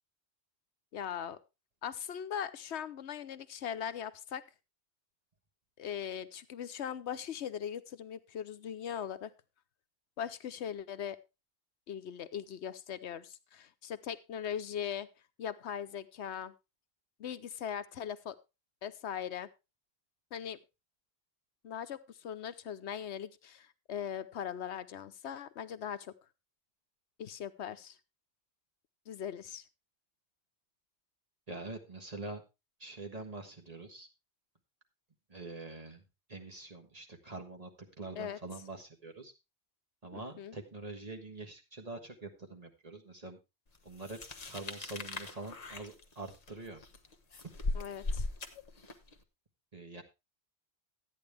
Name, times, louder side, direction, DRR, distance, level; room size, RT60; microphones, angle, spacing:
voice 1, 0.9-1.4 1.8-4.4 5.8-9.3 10.2-11.2 11.9-15.1 15.4-16.5 17.2-18.4 18.8-19.5 20.3-20.6 21.6-26.1 27.2-28.0 29.1-29.6 38.2-38.4 40.1-40.6 47.7-48.3, left 8 dB, 85° left, 12 dB, 1.1 m, -40 dB
voice 2, 31.5-32.4 32.8-34.1 35.3-36.0 36.3-37.7 38.0-39.3 40.0-43.4 43.8-44.2 44.5-46.8 49.7-50.0, right 2 dB, 35° right, 3 dB, 1.6 m, -45 dB
sound 1, 44.0-49.1, left 2 dB, 40° left, 1.2 m, -39 dB
13.5 x 9.3 x 3.4 m, 0.26 s
omnidirectional pair, 1.1 m